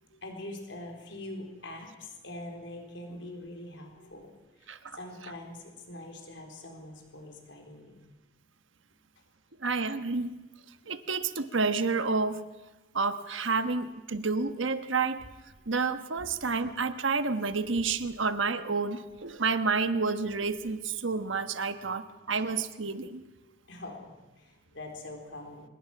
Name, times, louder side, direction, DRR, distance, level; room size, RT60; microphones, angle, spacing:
voice 1, 0.0-4.3 4.5-8.0 10.8-11.0 21.9-22.0 23.4-25.7, left 1 dB, 75° left, 2 dB, 4.1 m, -44 dB
voice 2, 9.6-10.3 10.9-12.4 12.9-15.2 15.7-23.2, right 4 dB, 90° right, 10 dB, 1.3 m, -29 dB
25.0 x 21.0 x 6.1 m, 1.1 s
head